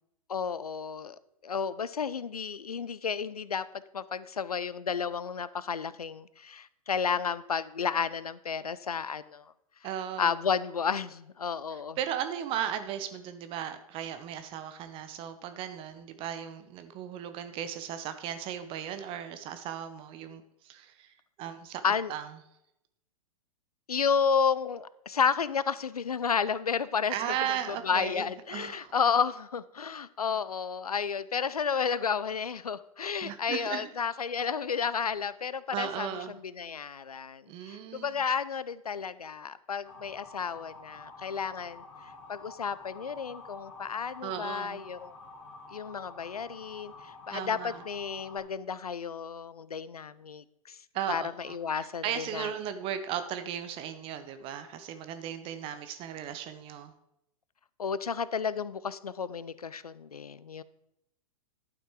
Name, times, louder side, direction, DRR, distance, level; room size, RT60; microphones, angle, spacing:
voice 1, 0.3-3.7 3.9-9.5 10.2-12.0 21.8-22.1 23.9-27.1 27.7-41.8 42.3-45.1 45.7-50.8 51.1-52.5 57.8-60.6, left 6 dB, 80° left, 17 dB, 0.5 m, -32 dB
voice 2, 9.8-10.3 11.7-21.8 22.1-22.3 27.1-28.9 33.2-33.9 35.7-36.4 37.5-38.1 44.2-44.8 47.3-47.8 50.9-56.9, right 9 dB, 30° right, 10 dB, 0.7 m, -36 dB
Motor vehicle (road) / Siren, 39.8-48.4, left 3 dB, 45° left, 2.4 m, -49 dB
11.5 x 6.1 x 4.6 m, 0.83 s
figure-of-eight pair, 105°, 19 cm